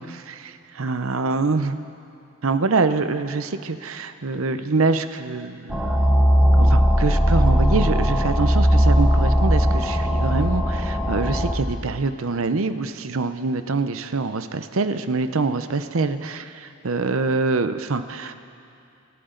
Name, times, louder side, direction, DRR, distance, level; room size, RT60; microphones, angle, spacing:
voice 1, 0.0-1.8 2.4-6.0 6.6-18.3, right 3 dB, 70° right, 10 dB, 0.7 m, -25 dB
sound 1, 5.7-11.5, equal, 5° right, 1.0 m, -18 dB
27.5 x 12.5 x 3.9 m, 2.6 s
head